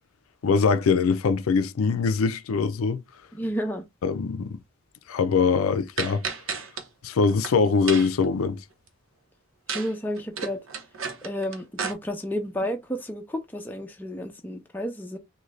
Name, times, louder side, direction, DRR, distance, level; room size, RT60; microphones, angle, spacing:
voice 1, 0.4-3.0 4.0-4.6 5.1-6.2 7.0-8.6, left 5 dB, 90° left, 0.4 m, -22 dB
voice 2, 3.3-3.8 9.7-10.6 11.2-15.2, equal, 10° left, 0.5 m, -31 dB
sound 1, 6.0-6.8 7.2-7.5 7.9-8.3 9.7-9.9 10.2-11.9, right 6 dB, 80° right, 0.8 m, -32 dB
3.8 x 2.2 x 3.1 m
head